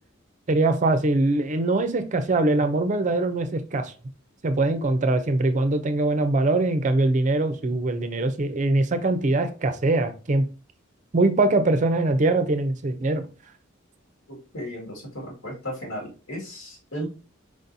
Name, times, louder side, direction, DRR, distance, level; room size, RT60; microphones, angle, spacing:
voice 1, 0.5-3.9 4.4-10.5 11.1-13.3, right 2 dB, 35° right, 8 dB, 0.5 m, -22 dB
voice 2, 14.3-17.1, equal, 85° left, -2 dB, 2.1 m, -35 dB
5.0 x 4.0 x 2.7 m, 0.35 s
head